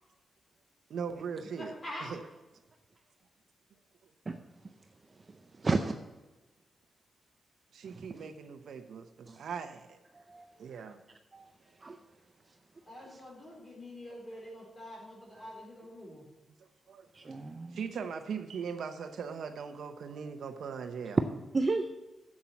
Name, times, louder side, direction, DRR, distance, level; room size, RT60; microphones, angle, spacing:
voice 1, 0.9-1.7 2.0-2.2 7.7-10.0 10.6-11.0 13.0-13.1 16.9-17.4 17.7-21.2, right 6 dB, 85° right, 7 dB, 1.0 m, -40 dB
voice 2, 1.6-2.1 12.9-16.2, left 1 dB, 25° left, -2 dB, 3.9 m, -45 dB
voice 3, 5.6-5.9 9.3-9.4 10.1-10.5 11.3-11.5 11.8-12.0 17.1-17.8 21.5-21.9, right 3 dB, 25° right, 6 dB, 0.5 m, -32 dB
7.6 x 7.4 x 7.1 m, 1.1 s
wide cardioid pair, 165°, 0 cm